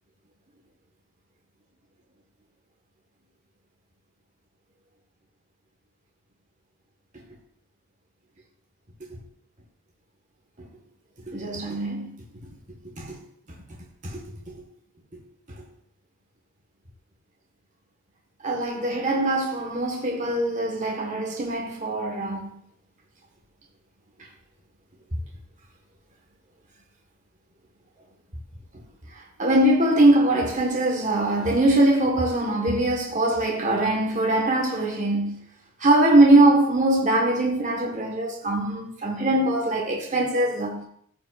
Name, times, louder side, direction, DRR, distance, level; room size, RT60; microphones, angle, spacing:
voice 1, 11.3-12.1 13.0-13.2 14.0-14.2 18.4-22.5 29.4-35.4 35.8-40.9, right 1 dB, 35° right, 1.5 m, -22 dB
14.0 x 5.5 x 2.5 m
head